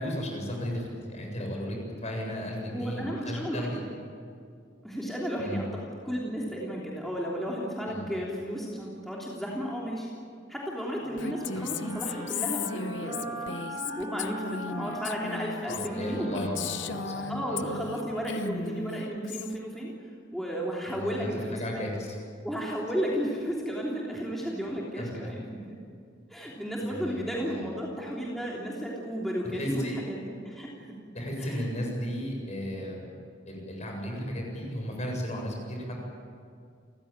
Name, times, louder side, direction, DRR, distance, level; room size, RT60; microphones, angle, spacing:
voice 1, 0.0-3.8 5.4-5.6 7.9-8.2 15.7-17.2 17.5-17.6 20.9-22.2 25.0-25.3 26.8-27.7 29.5-30.0 31.1-33.1 33.5-36.0, equal, 40° left, 0 dB, 7.6 m, -35 dB
voice 2, 2.7-3.8 4.8-5.7 6.0-10.1 10.5-16.5 17.3-21.8 22.4-25.4 26.3-30.9 31.4-31.7, equal, ahead, -4 dB, 3.3 m, -33 dB
sound 1, 11.0-18.4, equal, 20° right, 6.2 m, -40 dB
Female speech woman speaking, 11.2-18.0 18.3-19.6, left 6 dB, 70° left, 0.9 m, -36 dB
30.0 x 16.0 x 9.0 m, 2.3 s
head